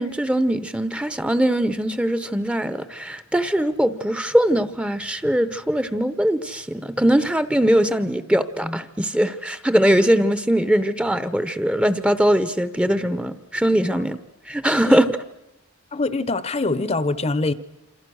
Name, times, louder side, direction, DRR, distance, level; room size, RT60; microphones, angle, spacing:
voice 1, 0.0-14.2 14.5-15.1, equal, 5° right, 12 dB, 0.8 m, -21 dB
voice 2, 15.9-17.5, left 3 dB, 30° left, 15 dB, 0.9 m, -24 dB
27.5 x 26.5 x 6.3 m, 0.92 s
head